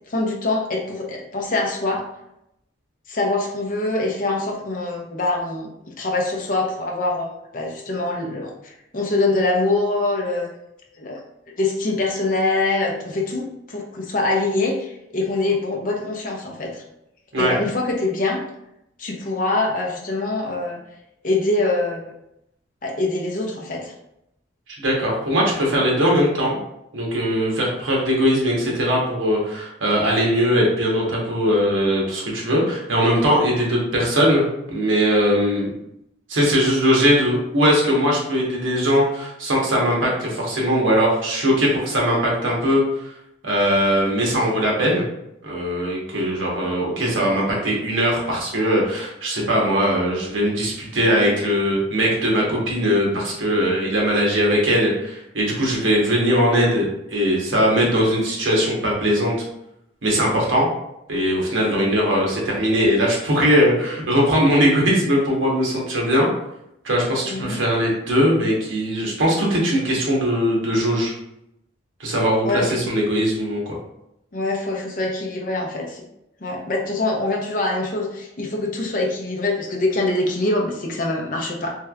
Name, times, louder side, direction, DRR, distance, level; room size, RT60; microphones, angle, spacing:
voice 1, 0.1-2.0 3.1-5.7 6.0-7.3 7.5-10.5 11.0-11.2 11.6-16.8 17.4-18.4 19.0-20.8 21.2-22.0 22.8-23.9 61.8-61.9 67.3-67.6 72.4-72.8 74.3-76.1 76.4-81.7, left 2 dB, 45° left, 0 dB, 0.6 m, -24 dB
voice 2, 24.8-26.6 26.9-35.7 36.3-42.8 43.4-45.0 45.4-59.3 60.0-60.7 61.1-66.3 66.8-71.1 72.0-73.8, equal, 85° right, -2 dB, 1.0 m, -20 dB
3.2 x 2.9 x 2.3 m, 0.82 s
head